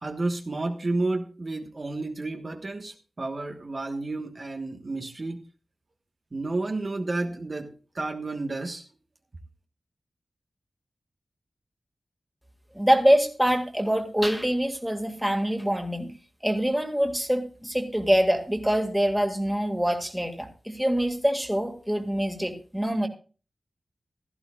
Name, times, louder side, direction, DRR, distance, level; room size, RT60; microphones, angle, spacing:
voice 1, 0.0-5.4 6.3-8.9, right 2 dB, 40° right, 3 dB, 1.3 m, -31 dB
voice 2, 12.7-16.1 16.4-23.1, equal, 5° right, 4 dB, 2.0 m, -25 dB
16.0 x 14.0 x 2.4 m, 0.35 s
wide cardioid pair, 120°, 0 cm